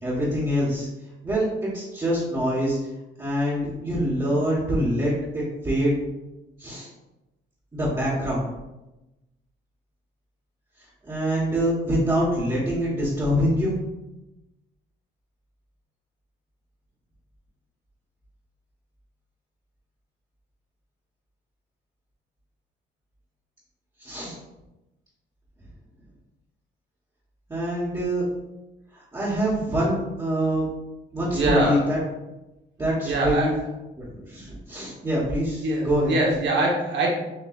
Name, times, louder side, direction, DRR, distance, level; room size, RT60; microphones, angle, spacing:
voice 1, 0.0-0.9 1.2-2.8 3.2-6.0 6.6-6.9 7.7-8.4 11.0-13.8 24.0-24.4 27.5-28.2 28.9-30.6 31.1-32.0 32.8-33.5 34.0-36.1, equal, 20° right, -9 dB, 1.3 m, -25 dB
voice 2, 31.3-31.8 33.0-33.5 35.6-37.1, right 2 dB, 60° right, -2 dB, 1.4 m, -23 dB
6.6 x 2.6 x 2.5 m, 1.0 s
cardioid pair, 90°, 20 cm